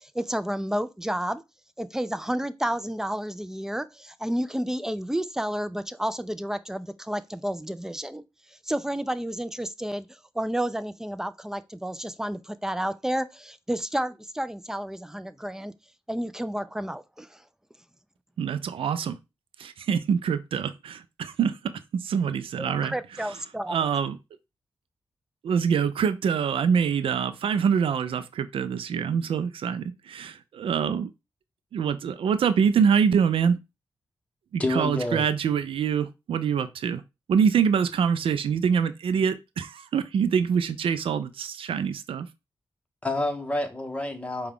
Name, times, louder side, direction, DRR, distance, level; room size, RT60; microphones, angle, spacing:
voice 1, 0.0-1.4 1.8-8.2 8.6-15.7 16.1-17.4 22.6-23.8, right 1 dB, 5° right, 0.4 m, -31 dB
voice 2, 18.4-19.2 19.6-23.0 23.7-24.2 25.4-31.1 31.7-33.6 34.5-37.0 37.3-42.3, right 7 dB, 85° right, 0.4 m, -25 dB
voice 3, 34.6-35.2 43.0-44.5, left 2 dB, 15° left, 1.1 m, -28 dB
4.7 x 2.3 x 3.5 m
cardioid pair, 55°, 9 cm